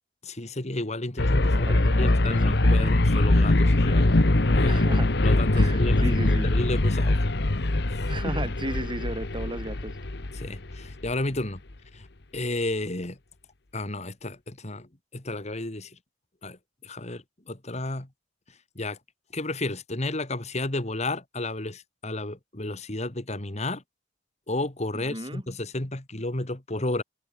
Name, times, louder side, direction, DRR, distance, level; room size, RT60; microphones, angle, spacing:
voice 1, 0.2-4.1 4.5-5.0 5.2-7.2 7.9-8.3 10.3-11.6 11.9-12.1 12.3-13.2 13.7-16.0 16.4-18.1 18.8-19.0 19.3-23.8 24.5-27.0, left 2 dB, 35° left, 2.1 m, -32 dB
sound 1, 1.2-11.1, left 2 dB, 60° left, 1.3 m, -22 dB
voice 2, 1.5-2.9 4.7-5.1 5.5-6.5 8.1-10.0 24.9-25.4, right 1 dB, 25° right, 5.6 m, -35 dB
head